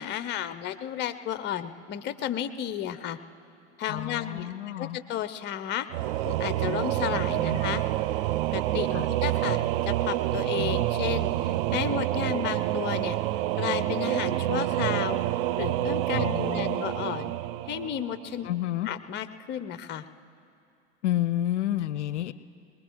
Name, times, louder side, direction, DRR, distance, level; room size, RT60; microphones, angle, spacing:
voice 1, 0.0-3.2 3.8-5.9 6.3-7.8 8.5-13.2 13.6-15.2 15.6-17.3 17.7-18.5 18.9-20.0, left 10 dB, 30° left, 13 dB, 0.6 m, -33 dB
voice 2, 3.9-5.0 7.1-7.6 8.9-9.1 16.2-16.9 18.4-18.9 21.0-22.3, left 13 dB, 75° left, 15 dB, 0.5 m, -30 dB
Singing / Musical instrument, 5.9-18.5, right 14 dB, 50° right, 0.4 m, -28 dB
22.5 x 20.5 x 3.1 m, 2.6 s
hypercardioid pair, 90°, 36 cm